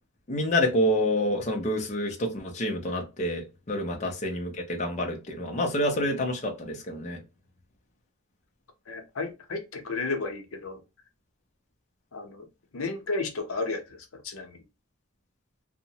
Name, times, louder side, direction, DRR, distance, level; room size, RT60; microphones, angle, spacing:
voice 1, 0.3-7.2, left 1 dB, 35° left, 0.5 m, -28 dB
voice 2, 8.9-10.8 12.1-12.5 12.7-14.6, left 3 dB, 80° left, 0.7 m, -33 dB
2.8 x 2.1 x 2.7 m
head